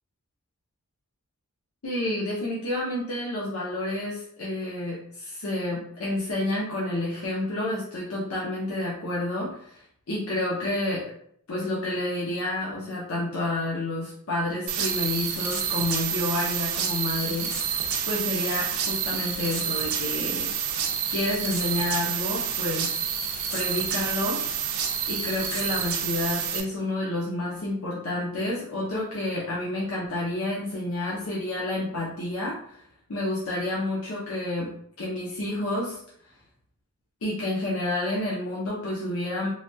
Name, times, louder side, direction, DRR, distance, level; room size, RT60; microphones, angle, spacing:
voice 1, 1.8-11.0 11.5-17.5 18.1-20.5 21.1-23.0 23.5-24.4 25.1-32.8 33.1-34.7 35.0-36.0 37.2-39.5, left 1 dB, 80° left, -5 dB, 0.7 m, -29 dB
sound 1, 14.7-26.6, right 8 dB, 75° right, 0.5 m, -28 dB
3.3 x 2.2 x 2.6 m, 0.66 s
head